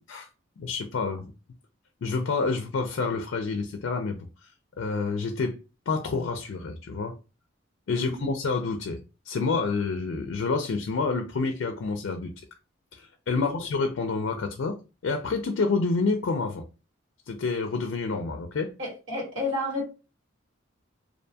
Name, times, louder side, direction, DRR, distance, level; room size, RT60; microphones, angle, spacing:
voice 1, 0.6-1.3 2.0-4.5 4.8-5.6 5.9-7.2 7.9-9.0 9.3-12.3 12.9-16.6 17.3-18.7, left 4 dB, 70° left, 0.4 m, -28 dB
voice 2, 7.9-8.3 13.3-13.5 18.8-19.9, left 2 dB, 75° right, 1.5 m, -31 dB
2.5 x 2.2 x 2.6 m
head